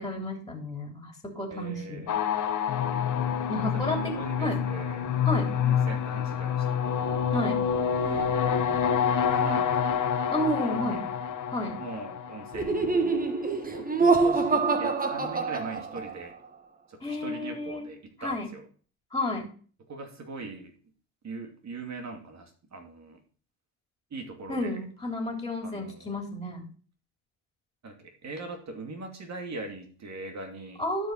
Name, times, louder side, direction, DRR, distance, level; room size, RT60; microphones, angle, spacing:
voice 1, 0.0-2.1 3.5-4.1 4.4-4.6 5.2-5.6 7.3-7.6 10.3-11.0 11.5-11.8 17.0-17.9 18.2-18.5 19.1-19.5 24.5-26.6 30.8-31.1, left 1 dB, 10° left, 2 dB, 3.3 m, -31 dB
voice 2, 1.5-2.2 3.6-5.0 5.6-7.1 7.5-8.4 9.2-9.9 10.6-11.0 11.8-13.2 13.7-16.3 16.9-18.6 19.9-20.7 21.2-23.2 24.1-24.8 25.6-26.1 27.8-30.8, right 3 dB, 40° right, 3 dB, 2.6 m, -41 dB
sound 1, 2.1-13.2, left 8 dB, 45° left, 1.5 m, -27 dB
Laughter, 12.5-16.3, right 4 dB, 20° right, 1.5 m, -25 dB
12.0 x 5.0 x 5.6 m, 0.41 s
supercardioid pair, 80°, 40 cm